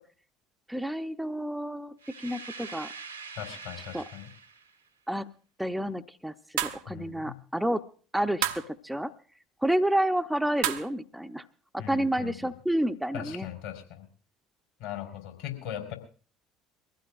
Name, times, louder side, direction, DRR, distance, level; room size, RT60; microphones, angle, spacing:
voice 1, 0.7-2.9 3.9-4.0 5.1-5.3 5.6-7.8 8.1-9.1 9.6-11.4 11.7-13.5, right 1 dB, 5° right, 7 dB, 0.7 m, -30 dB
sound 1, 2.0-4.8, right 5 dB, 85° right, 1.7 m, -44 dB
voice 2, 3.4-4.3 6.9-7.4 11.8-12.4 13.1-14.1 14.8-16.0, left 11 dB, 65° left, 2 dB, 4.2 m, -39 dB
sound 2, 6.6-6.8 8.4-8.7 10.6-10.9, right 12 dB, 65° right, 0.8 m, -29 dB
23.0 x 15.5 x 2.5 m, 0.40 s
figure-of-eight pair, 60°, 0 cm